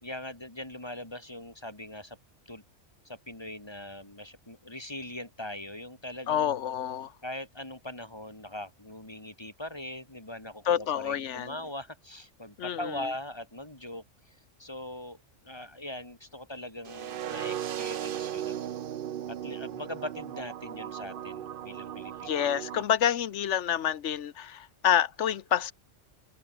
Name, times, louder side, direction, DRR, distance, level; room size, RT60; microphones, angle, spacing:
voice 1, 0.0-2.2 2.4-2.6 3.0-6.5 7.2-14.0 14.6-15.2 15.4-18.6 19.3-22.3, left 1 dB, 20° left, 3.2 m, -41 dB
voice 2, 6.3-7.1 10.7-11.5 12.6-13.1 22.3-25.7, left 9 dB, 70° left, 1.2 m, -28 dB
sound 1, 16.9-22.8, right 10 dB, 55° right, 0.7 m, -37 dB
omnidirectional pair, 1.3 m